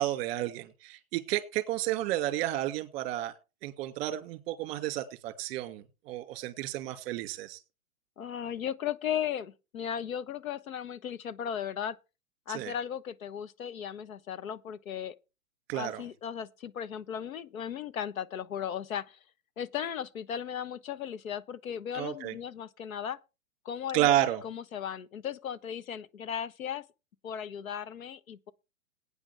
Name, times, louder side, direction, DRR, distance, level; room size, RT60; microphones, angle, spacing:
voice 1, 0.0-3.3 3.6-7.6 12.5-12.7 15.7-16.0 21.9-22.3 23.9-24.4, right 13 dB, 30° right, 2.0 m, -31 dB
voice 2, 8.2-12.0 12.5-15.1 15.7-19.2 19.6-23.2 23.6-26.8 27.2-28.5, left 9 dB, 75° left, 1.1 m, -36 dB
18.5 x 8.9 x 3.4 m
hypercardioid pair, 145°, 41 cm